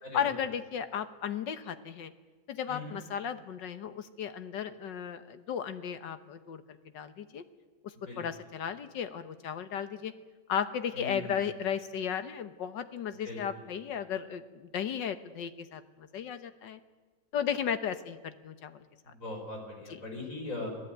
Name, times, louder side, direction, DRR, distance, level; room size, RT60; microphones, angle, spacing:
voice 1, 0.1-2.1 2.5-6.6 6.9-7.4 8.2-10.1 10.5-16.8 17.3-18.8 19.9-20.0, left 8 dB, 90° left, 10 dB, 1.9 m, -35 dB
voice 2, 10.9-11.3 13.2-13.4 19.0-20.7, left 2 dB, 45° left, 1 dB, 6.1 m, -40 dB
26.5 x 18.0 x 9.2 m, 1.4 s
omnidirectional pair, 1.9 m